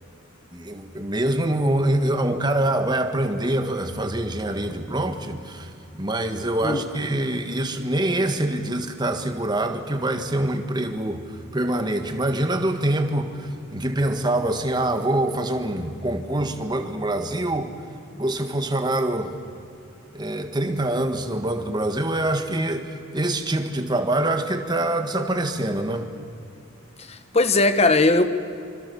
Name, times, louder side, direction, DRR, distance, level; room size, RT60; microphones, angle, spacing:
voice 1, 0.5-11.2 11.5-17.7 18.2-19.3 20.1-26.1, right 1 dB, 20° right, 1.6 m, -25 dB
voice 2, 27.0-28.3, left 2 dB, 30° left, 1.3 m, -19 dB
26.0 x 25.5 x 7.1 m
head